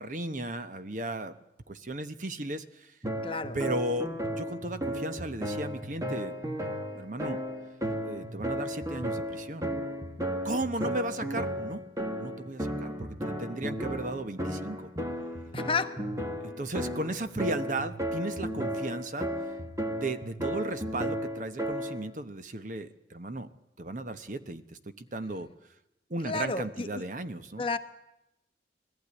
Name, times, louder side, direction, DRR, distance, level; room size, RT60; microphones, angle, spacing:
voice 1, 0.0-1.4 1.7-2.9 3.5-6.3 6.9-7.4 8.0-9.7 10.4-11.8 12.2-14.9 16.4-19.3 19.9-23.5 23.8-25.5 26.1-27.7, right 2 dB, 45° right, 11 dB, 1.0 m, -35 dB
sound 1, 3.0-22.1, equal, 20° right, 1.7 m, -34 dB
voice 2, 3.2-3.6 10.8-10.9 15.5-15.9 26.2-26.9 27.6-27.8, left 4 dB, 30° left, 9 dB, 0.9 m, -31 dB
20.5 x 15.0 x 9.7 m, 0.88 s
head